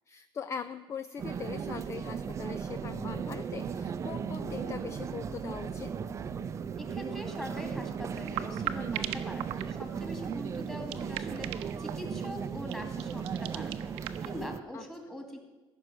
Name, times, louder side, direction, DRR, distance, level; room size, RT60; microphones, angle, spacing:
voice 1, 0.1-5.9 14.7-14.8, left 6 dB, 30° left, 12 dB, 0.5 m, -41 dB
sound 1, 1.2-14.6, right 7 dB, 30° right, 0.6 m, -36 dB
Electric guitar / Strum, 4.4-9.5, left 10 dB, 60° left, 0.9 m, -55 dB
voice 2, 6.8-15.4, left 1 dB, 5° left, 3 dB, 2.4 m, -43 dB
sound 2, 8.1-14.3, right 14 dB, 80° right, 0.8 m, -39 dB
14.5 x 6.5 x 9.8 m, 1.2 s
cardioid pair, 135°, 10 cm